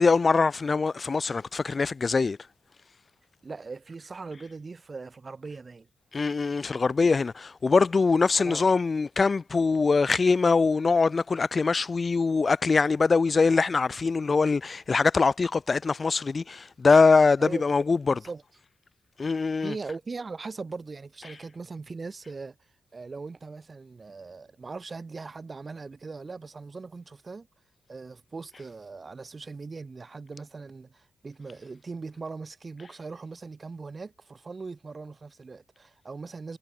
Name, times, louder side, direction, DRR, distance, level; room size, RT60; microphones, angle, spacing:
voice 1, 0.0-2.4 6.1-18.2 19.2-19.7, left 4 dB, 35° left, 0.3 m, -23 dB
voice 2, 3.4-5.9 8.4-8.7 17.4-17.6 18.2-18.4 19.6-22.6 22.9-27.5 27.9-36.6, right 4 dB, 35° right, 4.8 m, -40 dB
cardioid pair, 100°, 0 cm